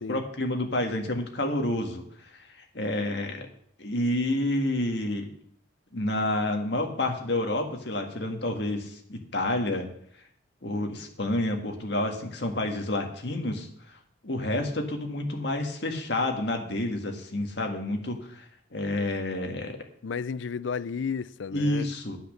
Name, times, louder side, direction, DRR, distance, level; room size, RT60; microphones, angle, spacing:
voice 1, 0.1-2.0 2.7-3.5 3.8-5.3 5.9-9.9 10.6-13.7 14.2-19.8 21.5-22.2, left 1 dB, 60° left, 1.8 m, -29 dB
voice 2, 20.0-21.9, left 6 dB, 75° left, 0.4 m, -32 dB
9.7 x 8.7 x 6.5 m
head